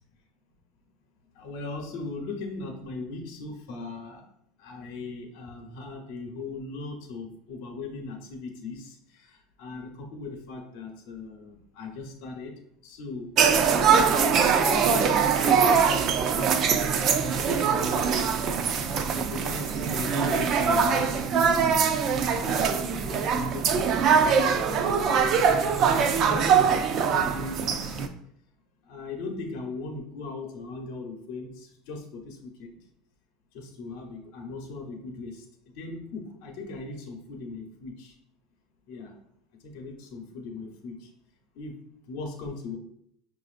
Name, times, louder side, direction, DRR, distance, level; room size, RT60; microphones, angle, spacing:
voice 1, 1.3-4.2 4.6-13.3 13.8-18.5 18.8-21.7 22.3-25.4 26.2-28.1 28.8-32.8 33.5-35.5 35.7-38.2 38.9-39.2 39.6-41.1 41.5-41.7 42.1-42.8, left 3 dB, 70° left, 3 dB, 0.8 m, -39 dB
sound 1, 13.4-28.1, right 6 dB, 45° right, 0.3 m, -23 dB
5.6 x 2.5 x 2.4 m, 0.73 s
supercardioid pair, 135°, 0 cm